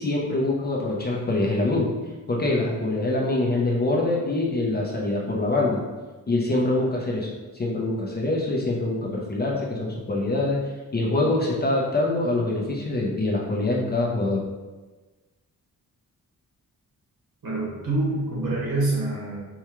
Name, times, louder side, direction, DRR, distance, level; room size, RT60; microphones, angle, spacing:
voice 1, 0.0-1.9 2.3-5.8 6.3-7.3 7.5-10.6 10.9-14.4, left 2 dB, 25° left, -3 dB, 0.6 m, -24 dB
voice 2, 17.4-19.4, right 2 dB, 75° right, -6 dB, 1.5 m, -26 dB
4.7 x 2.3 x 2.9 m, 1.2 s
wide cardioid pair, 140°, 36 cm